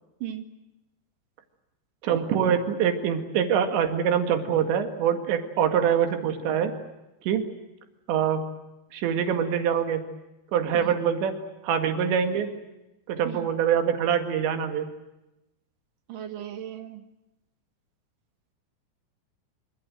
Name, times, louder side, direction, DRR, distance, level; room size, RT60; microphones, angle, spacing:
voice 1, 2.0-6.7 7.2-7.4 8.1-8.4 8.9-10.0 10.5-11.3 11.6-12.5 13.1-14.9, right 8 dB, 90° right, 6 dB, 4.3 m, -24 dB
voice 2, 16.1-17.0, right 11 dB, 60° right, 8 dB, 2.7 m, -36 dB
26.0 x 26.0 x 7.7 m, 0.96 s
omnidirectional pair, 4.9 m